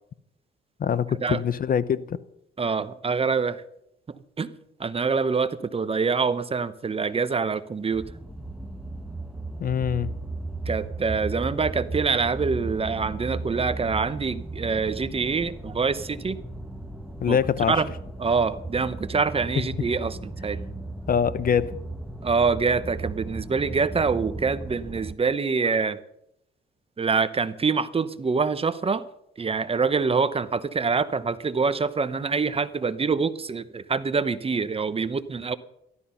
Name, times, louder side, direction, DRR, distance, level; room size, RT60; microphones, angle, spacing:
voice 1, 0.8-2.2 9.6-10.1 17.2-17.7 21.1-21.8, left 8 dB, 45° left, 0.7 m, -24 dB
voice 2, 2.6-3.6 4.1-4.5 4.8-8.1 10.7-16.4 17.3-17.4 17.7-17.9 18.2-20.6 22.2-26.0 27.0-29.0 29.4-35.6, right 5 dB, 30° right, 0.9 m, -25 dB
sound 1, 7.9-25.1, right 2 dB, 5° right, 1.3 m, -36 dB
14.0 x 12.5 x 5.6 m
cardioid pair, 90°, 20 cm